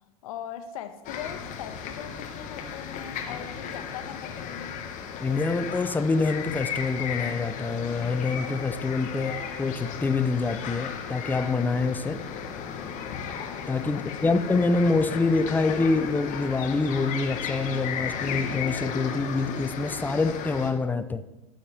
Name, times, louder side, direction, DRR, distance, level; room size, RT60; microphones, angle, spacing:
voice 1, 0.2-4.8 13.9-14.4, left 9 dB, 70° left, 1.2 m, -40 dB
sound 1, 1.0-20.7, left 7 dB, 45° left, 1.6 m, -35 dB
voice 2, 5.2-12.2 13.7-21.2, left 3 dB, 10° left, 0.5 m, -26 dB
16.0 x 6.4 x 3.5 m
hypercardioid pair, 95°, 19 cm